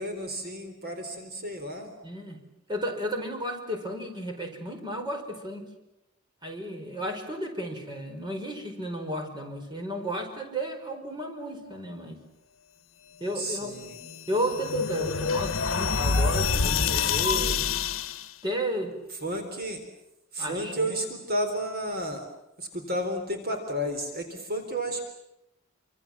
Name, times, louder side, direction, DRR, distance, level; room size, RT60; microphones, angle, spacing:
voice 1, 0.0-1.9 13.4-14.0 19.2-19.8 20.3-22.3 22.6-25.0, equal, 50° right, 5 dB, 3.9 m, -32 dB
voice 2, 2.0-2.4 2.7-5.7 6.4-12.2 13.2-13.7 14.3-17.6 18.4-18.9 20.4-21.0, equal, 20° right, 3 dB, 5.0 m, -33 dB
sound 1, 13.8-18.3, left 5 dB, 70° left, 1.1 m, -27 dB
28.0 x 26.0 x 7.4 m, 0.91 s
head